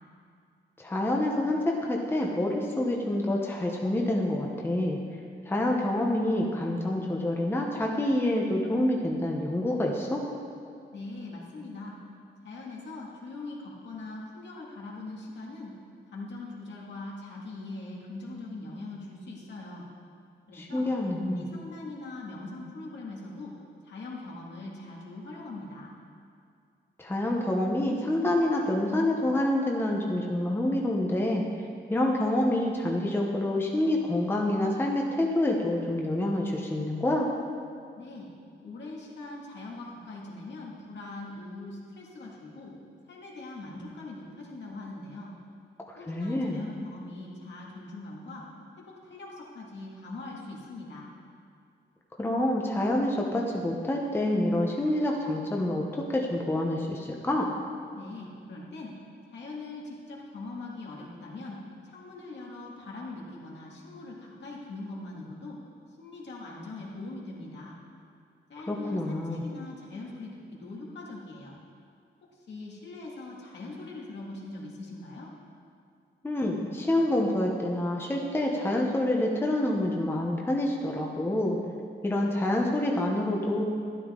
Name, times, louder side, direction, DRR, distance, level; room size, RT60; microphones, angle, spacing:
voice 1, 0.8-5.0 5.5-10.2 20.5-21.5 27.0-31.4 31.9-37.3 45.9-46.6 52.2-57.5 68.7-69.4 76.2-81.6 82.0-83.6, left 1 dB, 10° left, 0 dB, 0.8 m, -27 dB
voice 2, 10.9-12.0 12.4-15.8 16.1-19.9 20.5-20.9 21.2-23.5 23.8-25.9 38.0-38.3 38.6-42.7 43.1-45.3 46.0-48.5 48.9-51.1 57.9-59.0 59.3-65.6 66.0-67.8 68.5-71.6 72.3-75.3, left 2 dB, 70° left, -3 dB, 2.1 m, -41 dB
12.0 x 11.5 x 3.7 m, 2.3 s
wide cardioid pair, 175°, 19 cm